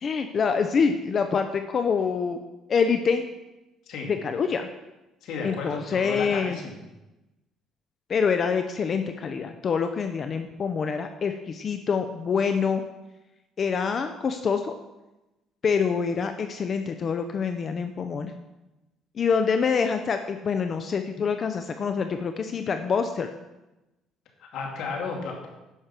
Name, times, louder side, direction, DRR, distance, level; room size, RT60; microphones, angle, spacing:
voice 1, 0.0-2.4 2.7-3.2 4.2-4.7 5.4-6.6 8.1-12.8 13.6-14.8 15.6-18.3 19.2-23.3, left 6 dB, 40° left, 7 dB, 0.7 m, -26 dB
voice 2, 5.2-6.8 24.4-25.5, left 4 dB, 70° left, 0 dB, 2.7 m, -33 dB
10.0 x 6.5 x 6.0 m, 1.0 s
cardioid pair, 110°, 0 cm